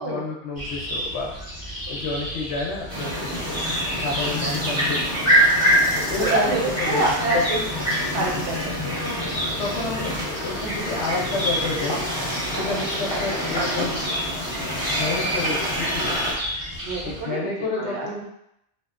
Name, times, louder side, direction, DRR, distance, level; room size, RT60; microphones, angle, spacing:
voice 1, 0.0-3.6 4.0-5.2 6.0-7.0 7.3-7.7 8.7-8.9 9.5-12.1 12.5-14.1 14.7-16.2 17.0-18.2, left 3 dB, 70° left, -2 dB, 0.8 m, -30 dB
sound 1, 0.5-17.2, equal, 15° right, 0.7 m, -33 dB
sound 2, 2.9-16.3, equal, 25° left, 0.8 m, -25 dB
voice 2, 6.2-7.6 8.1-8.8 9.0-9.6 12.5-12.8 16.8-17.5 17.7-18.2, right 2 dB, 70° right, -2 dB, 0.9 m, -27 dB
2.6 x 2.1 x 2.4 m, 0.79 s
omnidirectional pair, 1.3 m